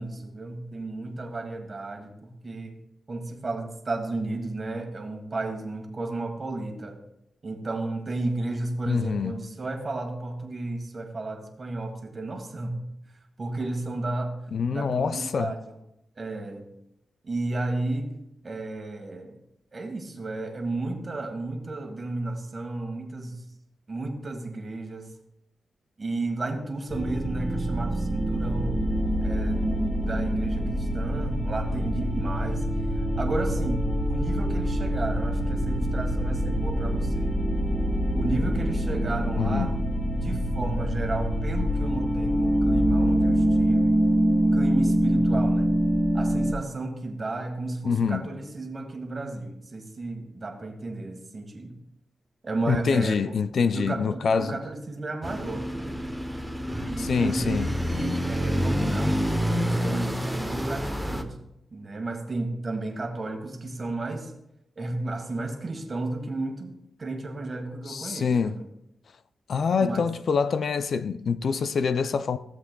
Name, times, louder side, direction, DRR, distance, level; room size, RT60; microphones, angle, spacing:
voice 1, 0.0-2.7 3.1-7.0 7.4-12.8 13.4-14.3 14.7-15.6 16.2-16.6 17.2-18.1 18.4-19.3 19.7-23.3 23.9-25.1 26.0-28.8 29.2-29.7 30.0-32.6 33.2-37.4 38.1-39.7 40.2-44.0 44.4-45.7 46.1-51.7 52.4-53.2 53.7-56.1 56.9-57.5 57.9-59.2 59.6-61.3 61.7-64.3 64.8-66.7 67.0-68.6 69.8-70.0, right 2 dB, 40° right, 1.5 m, -33 dB
voice 2, 8.9-9.5 14.5-15.6 39.3-39.8 47.8-48.4 52.7-54.6 57.0-57.8 67.9-68.6 69.5-72.4, left 5 dB, 65° left, 0.4 m, -26 dB
sound 1, 26.9-46.5, equal, 15° left, 1.2 m, -25 dB
sound 2, 55.2-61.2, equal, ahead, 0.8 m, -28 dB
16.0 x 7.3 x 2.3 m
cardioid pair, 85°, 0 cm